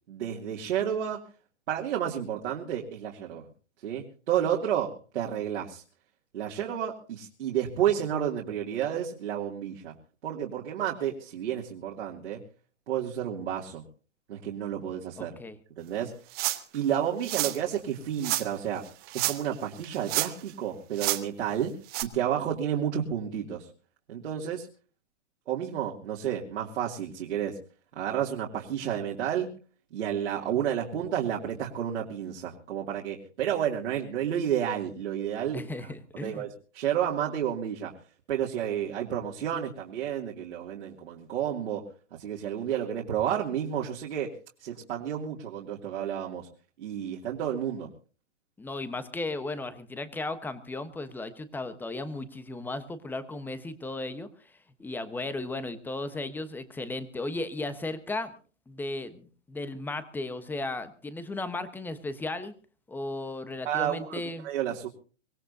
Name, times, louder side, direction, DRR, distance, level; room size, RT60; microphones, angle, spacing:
voice 1, 0.1-1.2 1.7-3.4 3.8-5.8 6.3-9.9 10.2-12.4 12.9-13.8 14.3-15.3 15.8-16.1 16.7-18.8 19.3-21.7 22.0-23.7 24.1-24.7 25.5-27.6 27.9-29.5 29.9-35.7 36.1-37.9 38.3-41.8 42.1-44.3 44.6-46.5 46.8-47.9 63.6-64.9, right 9 dB, 65° right, -3 dB, 2.8 m, -31 dB
voice 2, 15.2-15.6 35.5-36.5 48.6-54.5 54.8-58.3 58.7-62.5 62.9-64.5, left 2 dB, 5° left, 12 dB, 1.1 m, -35 dB
sound 1, 16.3-16.8 17.2-17.6 18.2-18.5 19.1-19.5 19.8-20.5 21.0-21.2 21.9-22.0, right 17 dB, 25° right, 1.1 m, -29 dB
24.0 x 17.5 x 2.8 m, 0.40 s
hypercardioid pair, 135°, 37 cm